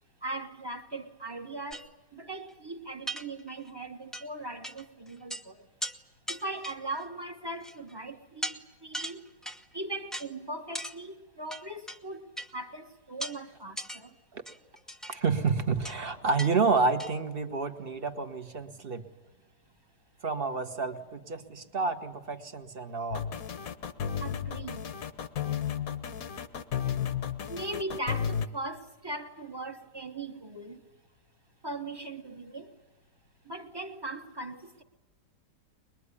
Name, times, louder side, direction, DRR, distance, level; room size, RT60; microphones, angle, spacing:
voice 1, 0.2-5.7 6.3-9.2 9.7-14.2 24.2-25.0 27.5-30.9 31.6-32.8 33.4-34.8, right 2 dB, 15° right, 1.1 m, -39 dB
sound 1, 1.7-1.9 2.5-2.6 3.1-3.7 4.1-4.3 4.6-4.8 5.1-5.4 5.8-6.0 6.3-7.0 7.6-7.9 8.4-8.6 8.9-9.6 10.1-10.3 10.8-11.0 11.5-12.0 12.4-12.5 13.2-13.4 13.8-14.0 14.5-15.2 15.8-16.0 16.4-16.5 16.8-17.1, right 1 dB, ahead, 0.4 m, -37 dB
voice 2, 15.1-19.0 20.2-23.4, right 4 dB, 35° right, 1.4 m, -29 dB
sound 2, 23.1-28.5, left 8 dB, 55° left, 1.3 m, -33 dB
22.5 x 22.0 x 9.9 m
omnidirectional pair, 1.9 m